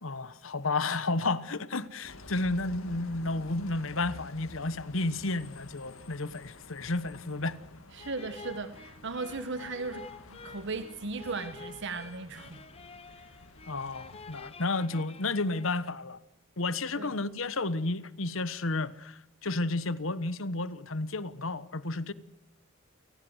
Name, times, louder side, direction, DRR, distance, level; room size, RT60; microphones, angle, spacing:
voice 1, 0.0-7.6 13.7-16.2 16.6-22.1, left 2 dB, 70° left, 1.3 m, -32 dB
Bus, 2.0-14.5, left 2 dB, 90° left, 2.1 m, -51 dB
voice 2, 7.9-12.6 13.1-13.2 17.0-17.1, right 3 dB, 60° right, 1.3 m, -37 dB
sound 1, 8.0-16.0, left 4 dB, 30° left, 1.2 m, -49 dB
29.0 x 19.0 x 8.1 m
head